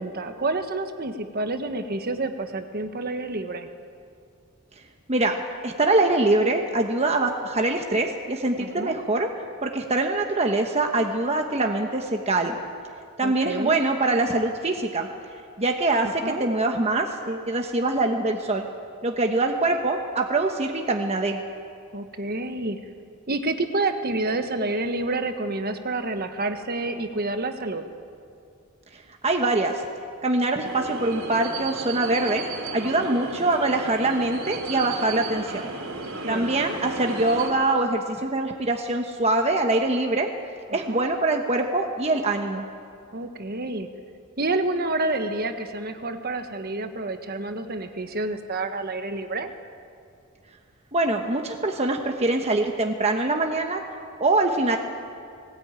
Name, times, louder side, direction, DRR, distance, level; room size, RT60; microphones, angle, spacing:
voice 1, 0.0-3.7 8.6-9.0 13.2-13.8 16.0-16.5 21.9-22.8 23.3-27.8 32.8-33.2 36.2-36.6 40.7-41.1 43.1-43.9 44.4-49.5, right 2 dB, 45° right, 7 dB, 1.3 m, -29 dB
voice 2, 5.6-9.3 9.6-12.6 13.2-15.1 15.6-18.7 19.0-21.4 29.2-29.8 30.2-32.4 32.7-35.7 36.3-40.3 40.7-42.6 50.9-53.8 54.2-54.8, right 2 dB, 30° right, 3 dB, 1.1 m, -24 dB
sound 1, 30.6-37.5, right 3 dB, 75° right, 3.2 m, -34 dB
18.5 x 18.5 x 9.0 m, 2.3 s
head